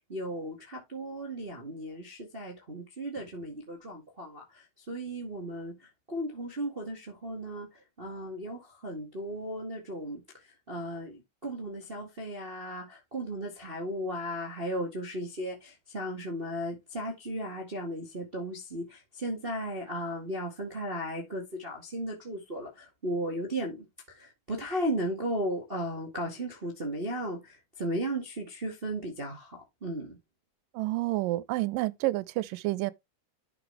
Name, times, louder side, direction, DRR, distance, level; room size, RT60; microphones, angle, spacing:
voice 1, 0.1-4.4 4.9-7.7 8.0-10.2 10.7-23.8 24.1-30.2, equal, 20° right, 1.7 m, -35 dB
voice 2, 30.7-32.9, right 18 dB, 90° right, 2.3 m, -29 dB
11.0 x 5.9 x 3.3 m
omnidirectional pair, 3.8 m